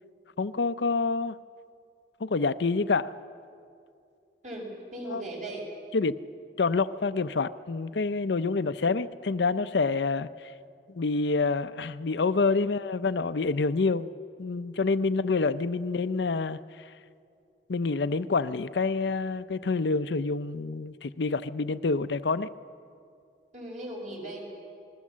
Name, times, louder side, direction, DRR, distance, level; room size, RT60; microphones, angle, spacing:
voice 1, 0.4-1.3 2.2-3.1 5.1-5.2 5.9-6.2 6.6-10.3 10.9-14.1 14.4-16.6 17.7-22.5, left 4 dB, 75° left, 12 dB, 0.6 m, -27 dB
voice 2, 4.4-5.6 23.5-24.4, right 1 dB, 45° right, -1 dB, 6.3 m, -38 dB
28.0 x 20.0 x 7.4 m, 2.4 s
head